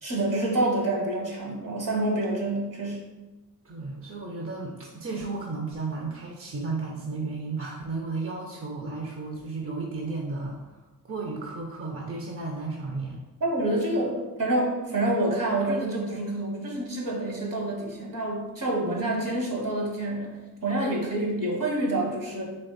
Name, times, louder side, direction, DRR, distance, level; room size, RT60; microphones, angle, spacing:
voice 1, 0.0-3.0 13.4-20.3 20.6-22.5, right 1 dB, 60° right, -2 dB, 1.3 m, -27 dB
voice 2, 3.6-10.8 11.0-13.2, right 3 dB, 40° right, 0 dB, 0.7 m, -33 dB
3.4 x 3.1 x 4.0 m, 1.1 s
cardioid pair, 45°, 37 cm